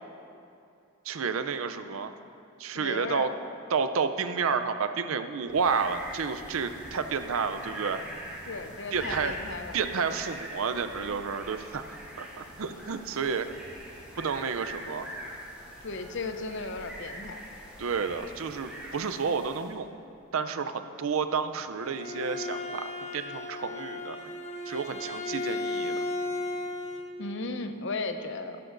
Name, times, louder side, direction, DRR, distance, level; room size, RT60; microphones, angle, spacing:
voice 1, 1.1-2.1 2.6-3.3 3.7-8.0 8.9-9.3 9.7-13.5 14.2-15.1 17.8-19.9 20.3-24.2 24.7-26.0, right 5 dB, 70° right, 10 dB, 0.5 m, -30 dB
voice 2, 2.7-3.3 8.5-9.8 15.8-17.4 27.2-28.6, left 3 dB, 60° left, 8 dB, 0.7 m, -35 dB
sound 1, 5.5-19.8, equal, 5° right, 2.8 m, -43 dB
Bowed string instrument, 21.6-27.1, left 2 dB, 30° left, 0.9 m, -35 dB
16.0 x 12.5 x 2.6 m, 2.5 s
head